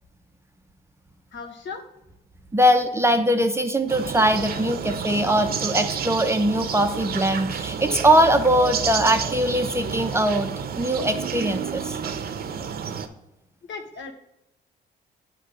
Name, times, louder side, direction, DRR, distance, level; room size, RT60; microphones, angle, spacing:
voice 1, 1.3-1.8 13.7-14.1, left 4 dB, 65° left, 4 dB, 1.3 m, -36 dB
voice 2, 2.5-12.0, equal, 15° right, 7 dB, 0.6 m, -21 dB
sound 1, 3.9-13.1, right 6 dB, 50° right, 0.7 m, -30 dB
8.8 x 3.0 x 6.3 m, 0.89 s
cardioid pair, 90°, 20 cm